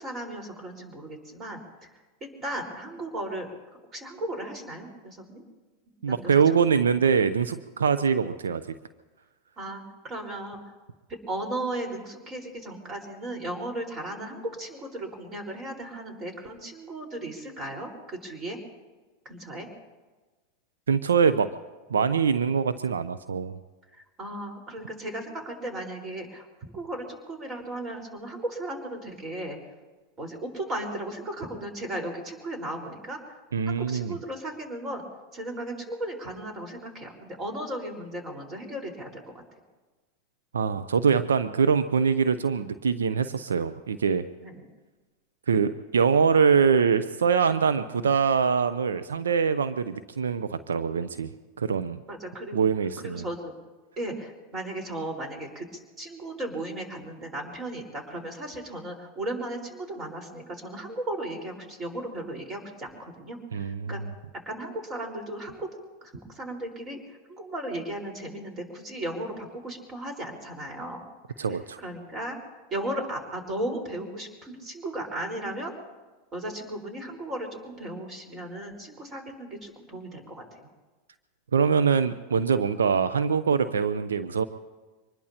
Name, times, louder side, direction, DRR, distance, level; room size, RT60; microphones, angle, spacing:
voice 1, 0.0-1.6 2.4-3.5 3.9-5.4 6.1-6.2 6.7-6.8 9.6-10.6 11.3-18.6 19.2-19.7 24.2-26.4 26.7-29.6 30.2-33.2 33.7-35.0 35.3-39.1 44.4-44.6 52.1-52.6 53.0-53.5 54.0-55.7 56.0-64.0 64.5-65.7 66.0-67.0 67.3-71.0 71.4-71.5 71.8-72.4 72.7-75.7 76.3-80.7, right 1 dB, 30° right, 3 dB, 4.5 m, -36 dB
voice 2, 6.0-8.6 20.9-21.5 21.9-23.5 33.5-34.2 40.5-44.2 45.5-51.3 51.6-52.0 52.5-53.3 63.5-64.1 71.4-71.8 81.5-84.4, right 6 dB, 85° right, 12 dB, 0.6 m, -23 dB
24.5 x 20.5 x 2.9 m, 1.3 s
hypercardioid pair, 95°, 0 cm